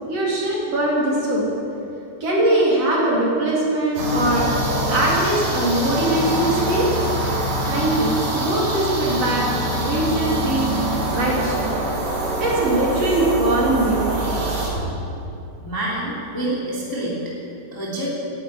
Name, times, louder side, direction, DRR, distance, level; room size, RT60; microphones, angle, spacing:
voice 1, 0.1-1.4 2.2-4.5 4.9-7.0 7.7-9.5 9.7-10.7 11.1-11.7 12.4-14.1 14.5-14.8, right 1 dB, 40° right, -5 dB, 3.3 m, -21 dB
sound 1, 3.9-14.7, right 1 dB, 60° right, 4.5 m, -24 dB
voice 2, 15.6-17.2 17.7-18.1, right 1 dB, 10° left, -5 dB, 1.3 m, -27 dB
11.0 x 11.0 x 9.3 m, 2.7 s
omnidirectional pair, 5.0 m